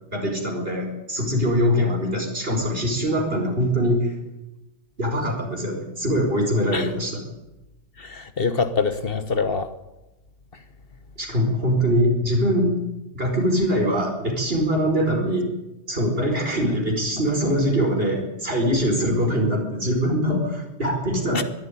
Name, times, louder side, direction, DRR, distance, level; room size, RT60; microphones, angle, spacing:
voice 1, 0.1-4.1 5.0-7.2 11.2-12.8 13.1-15.5 15.9-21.4, equal, 55° right, 4.9 m, -23 dB
voice 2, 8.0-9.7 21.3-21.4, left 4 dB, 55° left, 1.4 m, -24 dB
21.5 x 12.5 x 9.8 m
omnidirectional pair, 1.2 m